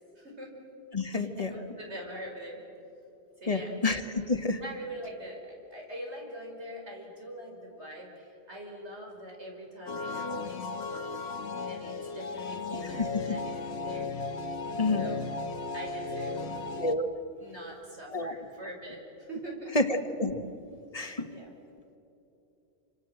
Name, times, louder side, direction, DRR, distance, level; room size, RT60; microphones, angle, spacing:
voice 1, 0.2-0.5 1.1-2.6 3.4-3.8 4.6-11.2 11.7-14.1 15.0-15.4 15.7-16.6 17.4-19.8 21.2-21.5, right 1 dB, 85° right, 0 dB, 5.8 m, -43 dB
voice 2, 0.9-1.5 3.5-4.6 12.8-13.4 14.8-15.1 16.8-17.1 18.1-18.3 19.7-20.4 20.9-21.3, left 2 dB, 35° left, 7 dB, 1.6 m, -29 dB
sound 1, 9.9-16.9, left 4 dB, 75° left, 1.4 m, -35 dB
28.0 x 25.5 x 7.8 m, 2.8 s
omnidirectional pair, 1.1 m